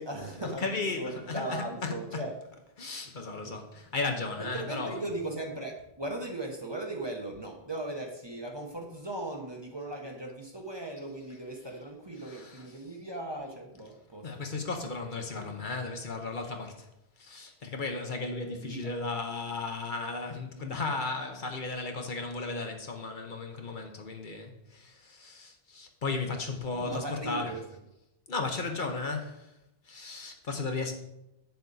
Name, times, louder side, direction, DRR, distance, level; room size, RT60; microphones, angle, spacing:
voice 1, 0.0-2.4 3.4-3.6 4.4-14.3 18.5-18.9 26.7-27.6, right 2 dB, 25° right, 0.9 m, -38 dB
voice 2, 0.6-2.0 2.8-5.0 12.3-12.6 14.2-16.9 17.2-27.5 28.3-29.5 29.8-30.9, left 3 dB, 55° left, 1.0 m, -35 dB
8.0 x 6.9 x 4.0 m
omnidirectional pair, 1.0 m